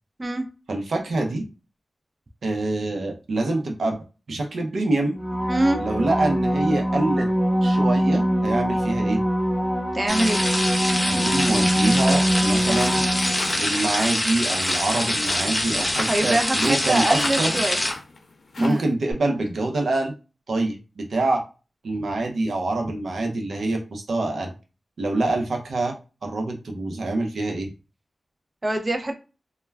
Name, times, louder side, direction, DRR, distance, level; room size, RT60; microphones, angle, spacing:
voice 1, 0.7-1.4 2.4-4.0 4.3-5.2 5.8-7.3 7.6-9.2 11.1-13.0 13.6-17.7 18.6-20.1 20.5-21.4 21.8-24.5 25.0-25.9 26.2-27.7, right 2 dB, 80° right, 3 dB, 0.6 m, -25 dB
sound 1, 5.2-13.8 19.1-19.2, equal, 10° right, 1.0 m, -23 dB
voice 2, 5.5-5.8 9.9-10.4 16.1-17.8 18.6-18.8 28.6-29.1, right 1 dB, 30° right, 5 dB, 0.4 m, -23 dB
sound 2, 10.1-17.9, left 1 dB, 15° left, 0.7 m, -25 dB
sound 3, 12.5-18.9, left 2 dB, 65° left, 0.6 m, -38 dB
2.2 x 2.1 x 3.2 m, 0.32 s
wide cardioid pair, 80°, 0 cm